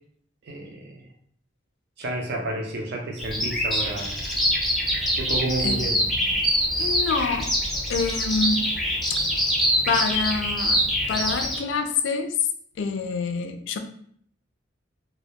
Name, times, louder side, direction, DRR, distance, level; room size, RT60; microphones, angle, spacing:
voice 1, 0.5-1.1 2.0-4.2 5.2-6.0, right 2 dB, 60° right, 2 dB, 0.5 m, -30 dB
Bird vocalization bird call bird song, 3.2-11.6, equal, ahead, 0.6 m, -24 dB
voice 2, 5.6-6.3 6.8-7.5 7.9-8.7 9.1-9.3 9.9-10.8 11.1-12.4 12.8-13.8, left 4 dB, 70° left, 6 dB, 0.3 m, -27 dB
2.2 x 2.1 x 2.7 m, 0.63 s
head